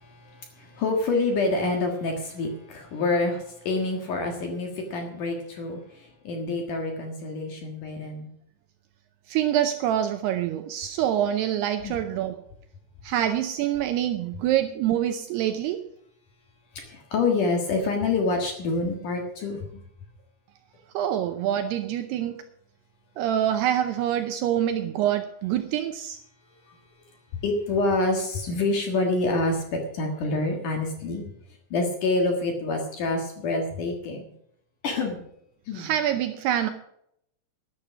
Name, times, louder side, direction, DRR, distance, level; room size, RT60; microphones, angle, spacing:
voice 1, 0.0-8.3 11.8-11.9 16.8-19.8 27.4-31.2 31.7-34.3 34.8-35.2 35.7-35.9, left 3 dB, 55° left, 3 dB, 2.5 m, -27 dB
voice 2, 9.3-12.4 13.0-15.8 20.9-22.4 23.2-26.2 35.7-36.7, right 11 dB, 80° right, 8 dB, 2.4 m, -26 dB
12.0 x 11.0 x 5.9 m, 0.73 s
omnidirectional pair, 5.3 m